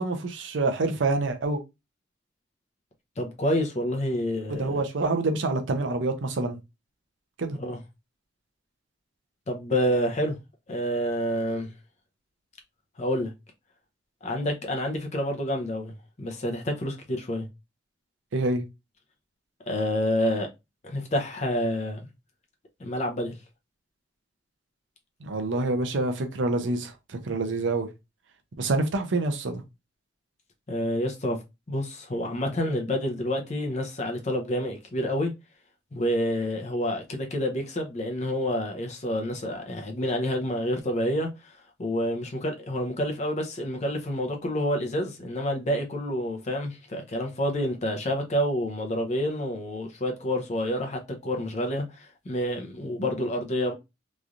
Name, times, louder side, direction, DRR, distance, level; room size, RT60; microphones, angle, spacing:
voice 1, 0.0-1.6 4.5-6.6 7.4-7.6 18.3-18.6 25.2-27.9 28.6-29.6, right 2 dB, 85° right, 0.6 m, -27 dB
voice 2, 3.2-4.8 7.6-7.8 9.5-10.4 10.7-11.7 13.0-13.3 14.2-17.5 19.7-20.5 20.8-22.0 22.8-23.3 30.7-31.4 31.7-35.3 35.9-41.5 41.8-53.7, equal, 40° left, 0.6 m, -28 dB
3.1 x 2.5 x 2.4 m
head